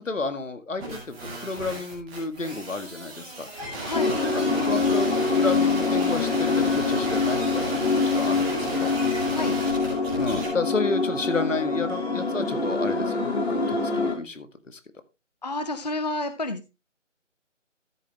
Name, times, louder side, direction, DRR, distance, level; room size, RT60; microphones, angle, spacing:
voice 1, 0.0-3.5 4.3-8.9 10.2-14.5 14.7-14.8, left 3 dB, 75° left, 10 dB, 1.8 m, -31 dB
sound 1, 0.8-10.5, right 1 dB, 5° right, 1.8 m, -34 dB
voice 2, 3.8-4.2 9.3-9.5 15.4-16.7, left 2 dB, 35° left, 9 dB, 0.7 m, -30 dB
sound 2, 3.9-14.1, left 4 dB, 55° left, 3.3 m, -25 dB
13.5 x 7.5 x 3.1 m, 0.25 s
figure-of-eight pair, 165°, 38 cm